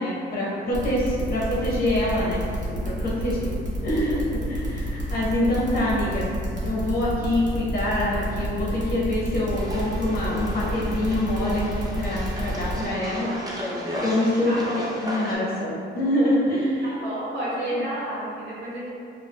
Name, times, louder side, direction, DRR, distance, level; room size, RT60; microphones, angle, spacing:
voice 1, 0.0-3.5 3.8-6.3 6.6-13.3 14.0-16.9 17.6-17.9, left 1 dB, 45° left, -6 dB, 1.0 m, -25 dB
sound 1, 0.7-12.9, left 1 dB, 40° right, 1.0 m, -31 dB
voice 2, 3.0-3.4 7.6-7.7 13.2-13.9 14.4-15.5 17.0-18.9, equal, 65° right, -8 dB, 1.0 m, -34 dB
sound 2, 9.5-15.4, equal, 20° right, 0.7 m, -35 dB
4.7 x 2.3 x 2.2 m, 2.4 s
cardioid pair, 90°, 20 cm